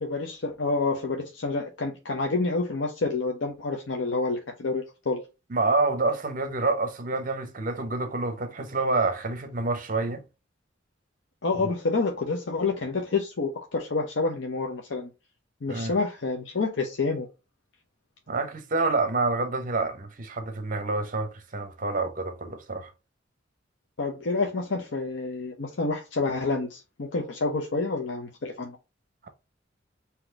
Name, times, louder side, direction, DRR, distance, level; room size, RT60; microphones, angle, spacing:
voice 1, 0.0-5.2 11.4-15.1 15.6-17.3 24.0-28.8, left 3 dB, 70° left, 0.7 m, -28 dB
voice 2, 5.5-10.2 11.6-11.7 15.7-16.0 18.3-22.9, right 3 dB, 45° right, 0.8 m, -28 dB
4.0 x 2.9 x 4.5 m
head